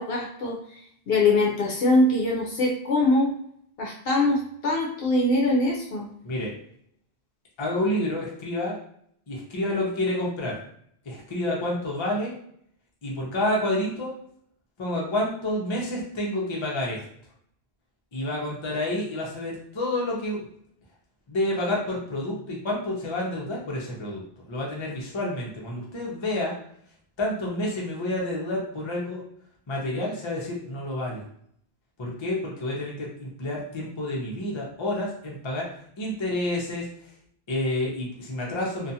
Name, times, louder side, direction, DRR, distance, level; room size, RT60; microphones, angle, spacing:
voice 1, 0.0-3.4 3.8-6.1, left 2 dB, 70° left, -2 dB, 0.8 m, -23 dB
voice 2, 7.6-8.8 9.3-10.6 11.1-12.3 13.0-14.1 14.8-17.0 18.1-20.5 21.3-24.2 24.5-26.6 27.2-29.2 29.7-31.2 32.0-35.7 36.0-36.9 37.5-38.9, left 1 dB, 35° left, -3 dB, 0.6 m, -29 dB
2.4 x 2.3 x 2.7 m, 0.65 s
omnidirectional pair, 1.1 m